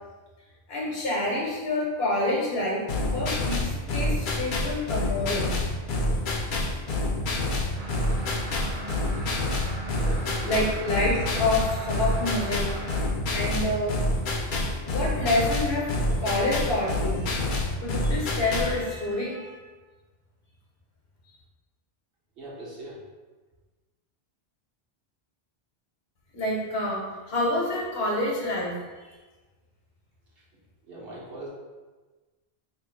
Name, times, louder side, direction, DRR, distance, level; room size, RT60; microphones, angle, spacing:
voice 1, 0.7-5.5 10.4-14.0 14.8-15.9 16.2-19.6 26.3-28.8 29.0-29.1, left 1 dB, 75° left, -3 dB, 1.2 m, -28 dB
sound 1, 2.9-18.8, left 1 dB, 60° left, 0.7 m, -27 dB
sound 2, 7.7-13.1, right 1 dB, 45° right, 0.9 m, -39 dB
voice 2, 10.0-10.6 22.4-23.0 30.8-31.5, right 2 dB, 65° right, -6 dB, 1.3 m, -40 dB
3.2 x 2.5 x 4.4 m, 1.3 s
omnidirectional pair, 1.0 m